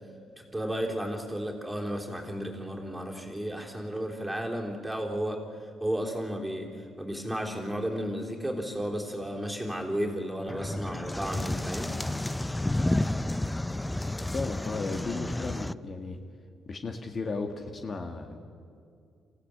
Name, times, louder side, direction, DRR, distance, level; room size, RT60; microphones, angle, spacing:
voice 1, 0.5-11.9, equal, 10° right, 1 dB, 3.5 m, -33 dB
sound 1, 10.5-15.7, left 1 dB, 10° left, 0.5 m, -31 dB
voice 2, 14.3-16.2 16.6-18.4, left 3 dB, 40° left, 4 dB, 1.6 m, -35 dB
26.5 x 15.5 x 8.5 m, 2.4 s
cardioid pair, 90°, 0 cm